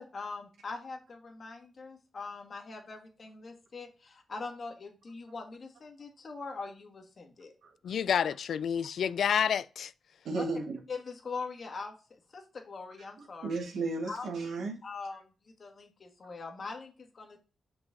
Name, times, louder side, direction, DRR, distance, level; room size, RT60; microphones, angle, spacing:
voice 1, 0.0-7.5 10.4-10.5 10.9-13.6 14.1-14.3 14.8-15.3 15.6-17.4, left 4 dB, 45° left, 1.8 m, -42 dB
voice 2, 7.8-9.9, left 8 dB, 70° left, 0.3 m, -29 dB
voice 3, 10.2-10.8 13.2-14.8, right 3 dB, 80° right, 2.0 m, -34 dB
6.1 x 5.5 x 2.8 m
cardioid pair, 100°, 0 cm